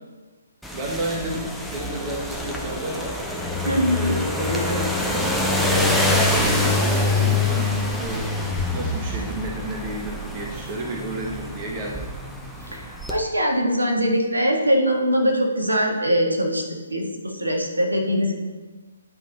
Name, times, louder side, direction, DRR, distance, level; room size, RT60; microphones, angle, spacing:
sound 1, 0.6-13.2, left 2 dB, ahead, 0.7 m, -25 dB
voice 1, 0.7-3.2 3.9-8.3 8.7-12.0, right 1 dB, 25° right, -1 dB, 1.2 m, -31 dB
voice 2, 3.6-4.2 12.6-16.6 16.9-18.3, equal, 75° right, 1 dB, 1.7 m, -22 dB
10.5 x 5.3 x 4.0 m, 1.3 s
figure-of-eight pair, 135°, 0 cm